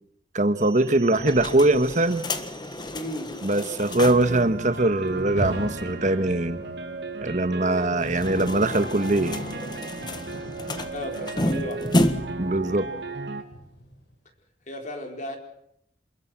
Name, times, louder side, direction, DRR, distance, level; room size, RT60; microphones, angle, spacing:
voice 1, 0.3-2.2 3.4-6.6 7.2-9.4 12.4-12.9, right 2 dB, 45° right, 10 dB, 1.5 m, -22 dB
sound 1, 0.6-13.4, right 3 dB, 75° right, 2.4 m, -36 dB
sound 2, 1.2-4.4 4.7-4.8 5.1-5.2 7.9-12.5, left 1 dB, 25° left, 1.4 m, -30 dB
voice 2, 2.9-3.4 10.9-11.8 14.7-15.4, left 1 dB, 45° left, 4 dB, 4.1 m, -34 dB
Rain, 5.1-14.1, equal, 80° left, 4.3 m, -41 dB
28.5 x 21.0 x 6.2 m, 0.74 s
head